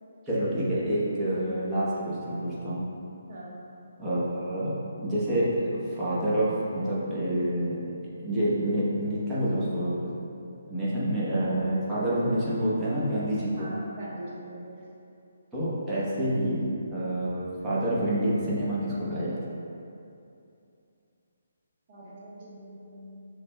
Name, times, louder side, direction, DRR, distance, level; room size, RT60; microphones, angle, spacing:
voice 1, 0.3-2.8 4.0-7.8 8.2-10.1 10.6-13.7 15.5-19.4, right 1 dB, 10° right, -10 dB, 0.9 m, -28 dB
voice 2, 13.6-14.7 21.9-23.2, right 1 dB, 45° right, -6 dB, 1.2 m, -43 dB
6.2 x 3.1 x 2.2 m, 2.7 s
hypercardioid pair, 160°, 0 cm